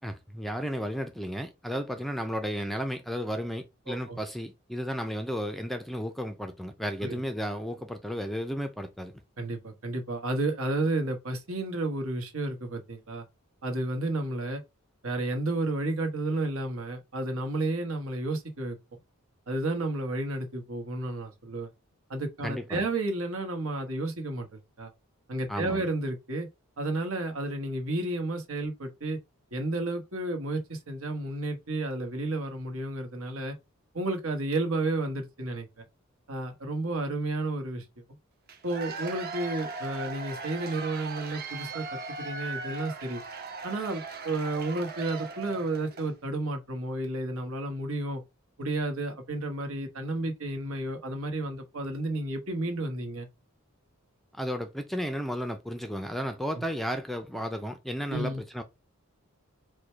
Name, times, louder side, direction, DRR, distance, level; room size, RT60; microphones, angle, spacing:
voice 1, 0.0-9.1 22.4-22.8 25.5-25.8 54.3-58.6, equal, ahead, 0.4 m, -33 dB
voice 2, 3.9-4.2 7.0-7.2 9.4-13.2 13.6-14.6 15.0-18.8 19.5-21.7 22.1-24.9 25.3-26.5 26.8-29.2 29.5-33.6 33.9-35.8 36.3-37.8 38.6-43.2 43.6-48.2 48.6-53.3 56.6-56.7 58.1-58.4, right 2 dB, 70° right, 1.2 m, -32 dB
Cheering / Applause / Crowd, 38.5-46.1, right 4 dB, 45° right, 0.9 m, -38 dB
4.9 x 2.2 x 4.5 m
head